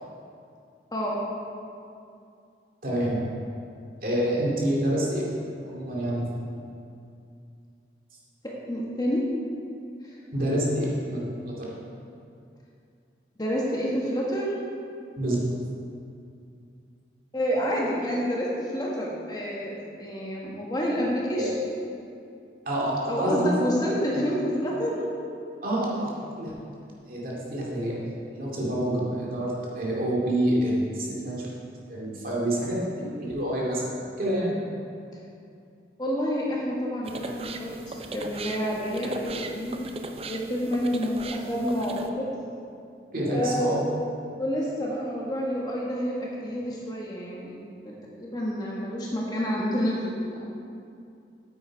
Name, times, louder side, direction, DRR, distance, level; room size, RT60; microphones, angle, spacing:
voice 1, 0.9-1.2 8.4-9.3 10.0-10.2 13.4-14.5 17.3-21.5 23.1-25.0 36.0-39.8 40.2-42.3 43.2-43.8 44.4-50.5, equal, 20° left, -4 dB, 1.4 m, -28 dB
voice 2, 2.8-3.2 4.0-5.2 5.6-6.3 10.3-11.7 15.2-15.5 21.4-21.5 22.6-23.5 24.1-24.3 25.6-26.5 27.1-28.0 28.3-31.5 31.9-34.6 43.1-43.8, right 1 dB, 50° right, -5 dB, 2.4 m, -27 dB
sound 1, 37.0-42.1, right 3 dB, 35° right, 0.5 m, -38 dB
9.4 x 8.4 x 4.6 m, 2.5 s
head